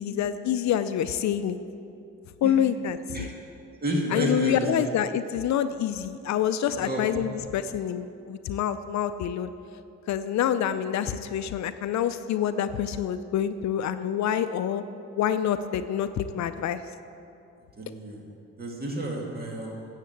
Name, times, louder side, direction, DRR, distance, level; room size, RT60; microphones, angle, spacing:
voice 1, 0.0-1.6 2.4-3.3 4.1-9.5 10.1-14.8 15.2-16.8, left 9 dB, 65° left, 11 dB, 0.5 m, -27 dB
voice 2, 3.8-4.6 6.8-7.0 17.8-18.2 18.6-19.9, right 1 dB, 30° right, -1 dB, 2.1 m, -30 dB
9.7 x 7.5 x 7.8 m, 2.6 s
cardioid pair, 90°, 30 cm